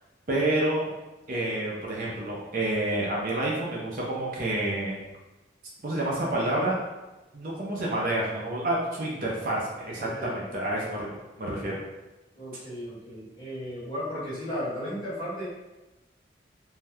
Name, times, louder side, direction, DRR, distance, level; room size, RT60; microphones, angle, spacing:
voice 1, 0.3-0.9 1.3-5.0 5.8-6.8 7.3-11.1 11.4-11.8, right 1 dB, 45° right, -4 dB, 0.5 m, -28 dB
voice 2, 10.0-10.3 12.3-15.4, equal, 20° left, -11 dB, 1.4 m, -35 dB
2.7 x 2.3 x 3.3 m, 1.1 s
head